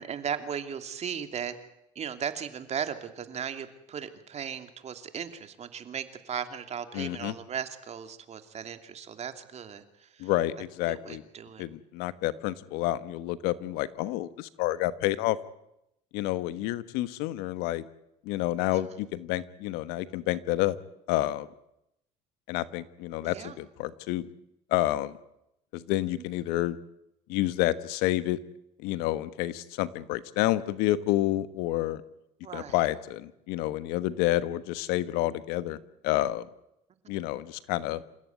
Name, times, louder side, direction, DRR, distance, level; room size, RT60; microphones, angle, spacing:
voice 1, 0.0-1.5 1.9-10.3 10.9-11.6 12.5-12.6 18.7-19.0 23.2-23.6 26.1-26.2 32.4-32.8, right 8 dB, 45° right, 9 dB, 2.8 m, -37 dB
voice 2, 6.9-7.3 10.2-11.2 11.6-15.4 16.1-17.8 18.2-20.8 21.1-21.5 22.5-24.3 24.7-25.1 25.7-26.8 27.3-28.4 28.8-32.0 32.5-35.8 36.0-36.5 37.1-38.0, left 15 dB, 80° left, 15 dB, 1.3 m, -29 dB
28.0 x 15.0 x 9.5 m, 0.82 s
supercardioid pair, 90°, 16 cm